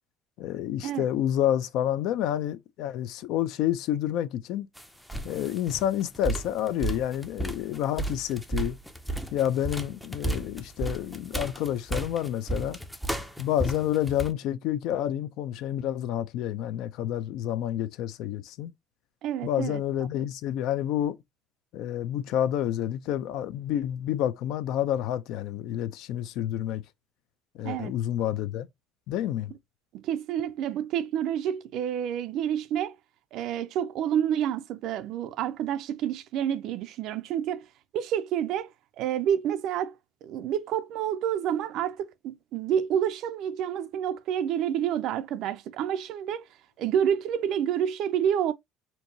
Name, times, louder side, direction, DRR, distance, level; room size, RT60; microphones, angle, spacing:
voice 1, 0.4-4.7 5.2-8.8 9.3-12.8 13.4-18.7 19.4-21.2 21.7-26.8 27.5-28.7 29.1-29.5, left 11 dB, 65° left, 0.4 m, -29 dB
sound 1, 4.8-4.9 5.1-14.3, right 2 dB, ahead, 0.4 m, -33 dB
voice 2, 19.2-19.8 27.6-27.9 29.9-33.0 33.3-37.7 37.9-38.7 39.0-39.9 40.2-46.5 46.8-48.5, right 9 dB, 55° right, 0.4 m, -28 dB
4.5 x 2.7 x 2.6 m
cardioid pair, 160°, 0 cm